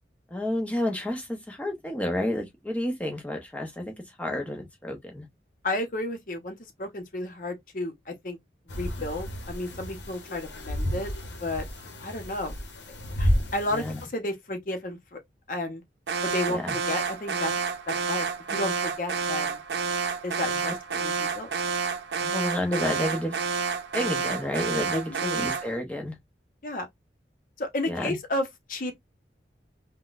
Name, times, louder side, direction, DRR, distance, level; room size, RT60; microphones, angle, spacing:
voice 1, 0.3-5.3 13.7-14.0 16.5-16.8 22.2-23.4 23.9-26.2 27.9-28.2, left 1 dB, 10° left, 0.6 m, -30 dB
voice 2, 5.6-8.4 8.7-11.1 11.4-11.6 12.0-12.6 13.2-15.2 15.5-15.8 16.2-17.5 17.9-19.6 20.2-21.5 24.9-25.3 26.6-26.9 27.6-28.9, left 1 dB, 50° left, 0.8 m, -32 dB
sound 1, 8.7-14.1, equal, 85° left, 0.8 m, -31 dB
Alarm, 16.1-25.7, right 5 dB, 75° right, 0.4 m, -29 dB
3.6 x 2.2 x 2.4 m
head